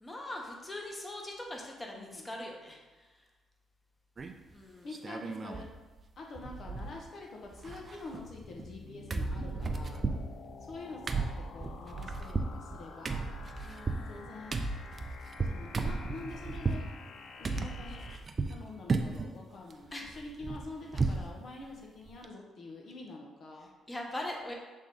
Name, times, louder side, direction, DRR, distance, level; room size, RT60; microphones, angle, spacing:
voice 1, 0.0-2.8 4.5-4.9 13.6-14.2 19.9-20.1 23.9-24.5, left 1 dB, 20° left, 0 dB, 1.1 m, -41 dB
voice 2, 1.9-2.3 4.8-5.7 6.2-10.0 10.6-11.2 11.5-13.3 14.1-14.5 15.4-16.9 17.4-18.0 18.5-23.7, left 2 dB, 60° left, 0 dB, 1.0 m, -46 dB
sound 1, 4.2-4.5 4.9-5.7 6.0-6.1 6.4-7.2 7.5-8.8 9.1-16.9 17.4-18.6 18.9-19.3 19.7-21.3 21.6-21.7 22.1-22.3, right 3 dB, 35° right, 0.5 m, -35 dB
sound 2, 8.2-18.2, left 4 dB, 80° left, 0.6 m, -50 dB
7.2 x 3.6 x 3.9 m, 1.2 s
cardioid pair, 90°, 0 cm